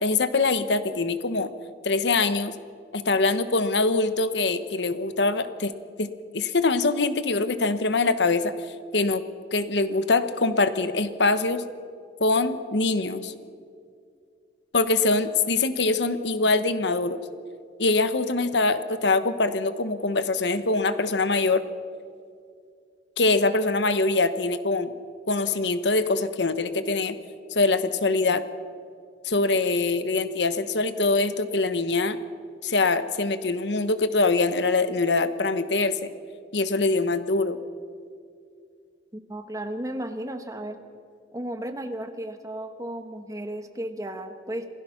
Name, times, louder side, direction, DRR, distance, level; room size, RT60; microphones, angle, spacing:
voice 1, 0.0-1.5 1.8-2.5 2.9-5.7 6.0-8.5 8.9-9.2 9.5-11.6 12.2-13.3 14.7-17.2 17.8-21.6 23.2-24.9 25.3-27.2 27.5-28.4 29.2-32.2 32.6-36.1 36.5-37.6, left 3 dB, 75° left, 11 dB, 1.1 m, -23 dB
voice 2, 39.1-40.8 41.3-44.7, right 1 dB, 20° right, 7 dB, 1.4 m, -34 dB
27.0 x 17.0 x 5.9 m, 2.3 s
head